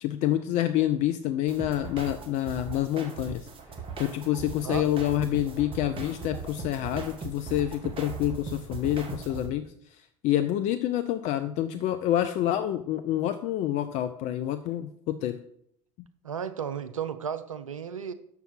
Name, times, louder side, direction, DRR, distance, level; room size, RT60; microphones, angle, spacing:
voice 1, 0.0-3.5 4.0-9.7 10.2-15.4, left 12 dB, 45° left, 10 dB, 0.4 m, -27 dB
sound 1, 1.5-9.5, right 5 dB, 35° right, 1.4 m, -39 dB
voice 2, 16.2-18.1, right 7 dB, 85° right, 11 dB, 0.5 m, -34 dB
6.8 x 4.7 x 5.7 m, 0.68 s
figure-of-eight pair, 70°, 17 cm